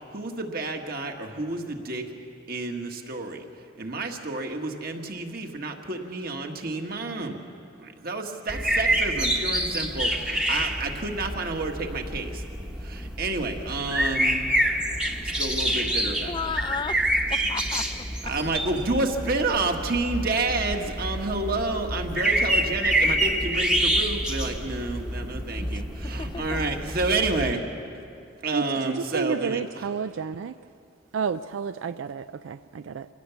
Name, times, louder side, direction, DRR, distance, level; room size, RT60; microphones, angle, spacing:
voice 1, 0.1-2.0 2.5-3.4 3.8-7.4 7.8-12.4 12.8-14.4 15.2-16.4 18.2-27.6 28.4-29.8, right 3 dB, 50° right, 1.6 m, -29 dB
sound 1, 8.5-27.5, right 1 dB, 5° right, 1.0 m, -27 dB
voice 2, 16.3-17.0 17.3-18.3 25.5-25.8 26.2-26.8, left 5 dB, 25° left, 0.4 m, -34 dB
voice 3, 28.5-30.6 31.1-33.1, right 6 dB, 90° right, 0.4 m, -31 dB
26.0 x 16.5 x 7.0 m
head